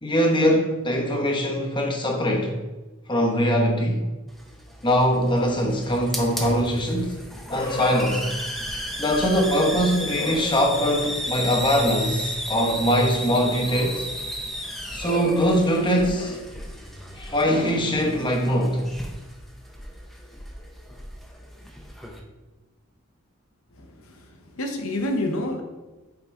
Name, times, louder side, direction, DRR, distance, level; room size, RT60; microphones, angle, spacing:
voice 1, 0.0-2.6 3.1-4.0 4.8-7.2 7.5-8.3 9.0-14.1 14.9-16.5 17.1-18.9, equal, 20° left, 1 dB, 1.0 m, -22 dB
Hiss, 4.3-22.2, equal, ahead, 0.7 m, -34 dB
voice 2, 23.8-25.6, left 1 dB, 70° left, 4 dB, 0.9 m, -29 dB
7.1 x 3.9 x 4.6 m, 1.2 s
head